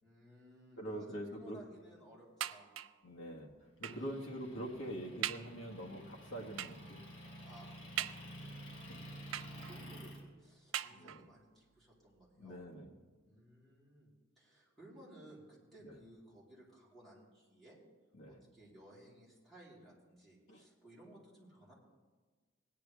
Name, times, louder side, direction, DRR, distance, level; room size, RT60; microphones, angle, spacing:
voice 1, 0.0-2.7 4.0-4.1 7.4-8.1 8.5-12.6 13.2-14.1 14.4-17.8 18.3-21.7, right 1 dB, ahead, -7 dB, 3.8 m, -59 dB
voice 2, 0.8-1.6 3.0-3.5 3.8-7.0 8.9-9.0 10.9-11.3 12.4-12.9 15.8-15.9 18.2-18.4 20.5-20.6, right 1 dB, 65° left, -1 dB, 1.6 m, -44 dB
sound 1, 2.4-3.1 3.8-4.1 4.7-4.8 5.2-5.6 6.6-6.9 8.0-8.6 9.3-9.9 10.7-11.4 12.2-12.3 12.6-12.7, right 11 dB, 80° right, 0.4 m, -42 dB
Motor vehicle (road) / Engine, 3.8-10.2, equal, 85° left, 3.6 m, -51 dB
17.5 x 10.5 x 3.4 m, 1.4 s
head